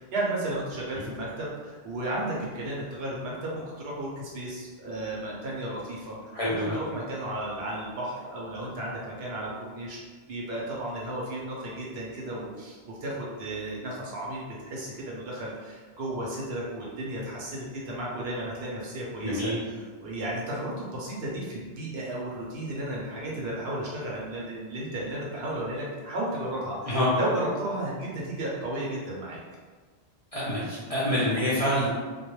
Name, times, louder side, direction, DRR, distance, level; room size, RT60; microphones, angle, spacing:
voice 1, 0.0-6.2 6.5-10.0 10.3-29.4, right 1 dB, 70° right, -4 dB, 0.9 m, -34 dB
voice 2, 6.3-6.7 19.2-19.6 26.9-27.1 30.3-31.9, equal, 50° left, -8 dB, 0.4 m, -26 dB
2.3 x 2.1 x 3.0 m, 1.4 s
omnidirectional pair, 1.1 m